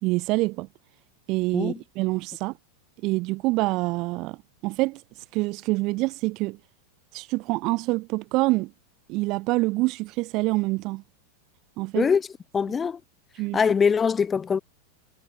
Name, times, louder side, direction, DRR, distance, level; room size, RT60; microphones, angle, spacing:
voice 1, 0.0-0.7 1.3-2.5 3.0-4.4 4.6-5.0 5.3-6.6 7.1-8.7 9.1-11.0 11.8-12.1 13.4-13.6, right 22 dB, 40° right, 3.9 m, -26 dB
voice 2, 12.5-13.0 13.5-14.6, left 6 dB, 20° left, 4.8 m, -22 dB
figure-of-eight pair, 90°, 0 cm